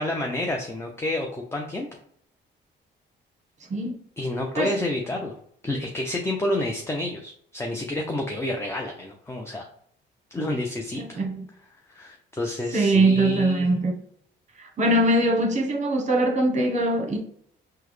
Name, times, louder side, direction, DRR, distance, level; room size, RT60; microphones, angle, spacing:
voice 1, 0.0-1.9 4.2-5.3 5.6-9.7 10.3-11.2 11.9-13.7, left 1 dB, 15° left, 0.5 m, -29 dB
voice 2, 11.0-11.5 12.7-14.0 14.8-17.2, right 1 dB, 35° right, 1.0 m, -22 dB
3.7 x 2.2 x 3.1 m
cardioid pair, 90°, 20 cm